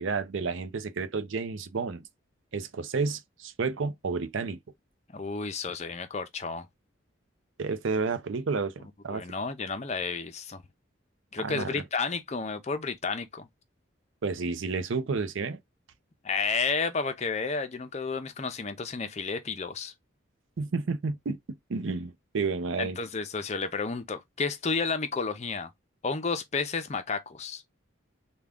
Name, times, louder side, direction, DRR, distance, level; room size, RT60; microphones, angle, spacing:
voice 1, 0.0-2.0 2.5-4.6 7.6-9.2 11.4-11.8 14.2-15.6 20.6-23.0, right 4 dB, 75° right, 0.5 m, -31 dB
voice 2, 5.1-6.7 9.1-10.6 11.3-13.5 16.2-19.9 22.8-25.7 26.0-27.6, left 4 dB, 35° left, 0.5 m, -31 dB
3.6 x 2.2 x 3.4 m
head